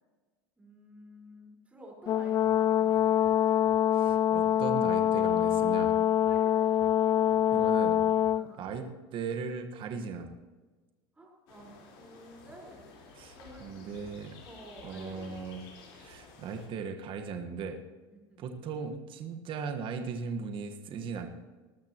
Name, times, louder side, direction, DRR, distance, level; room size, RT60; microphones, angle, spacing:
voice 1, 0.6-3.3 6.1-6.9 8.3-8.7 11.1-13.0 13.4-13.8 14.4-15.5 18.1-18.4, right 1 dB, 10° right, -1 dB, 4.7 m, -52 dB
Brass instrument, 2.1-8.4, left 11 dB, 30° left, 0.3 m, -25 dB
voice 2, 3.9-5.9 7.5-8.0 8.6-8.9 9.1-10.3 13.1-14.3 14.8-15.6 16.0-17.8 18.4-21.3, right 5 dB, 40° right, 5 dB, 1.5 m, -38 dB
sound 1, 11.5-16.7, left 4 dB, 70° left, 4.3 m, -52 dB
20.0 x 12.5 x 3.0 m, 1.3 s
supercardioid pair, 115°, 13 cm